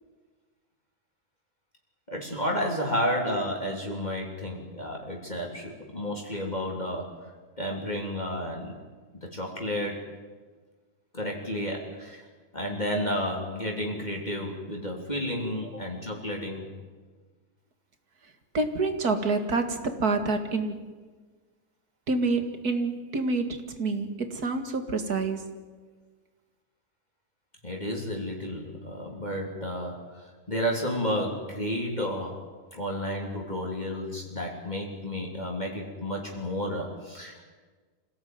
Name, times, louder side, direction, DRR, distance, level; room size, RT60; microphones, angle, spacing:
voice 1, 2.1-7.3 7.6-8.8 9.2-10.1 11.1-12.3 12.5-16.7 27.6-32.4 32.7-37.4, equal, 30° left, -1 dB, 3.3 m, -31 dB
voice 2, 18.5-20.9 22.1-25.5, right 3 dB, 80° right, 7 dB, 2.6 m, -27 dB
26.0 x 17.5 x 9.5 m, 1.4 s
omnidirectional pair, 1.6 m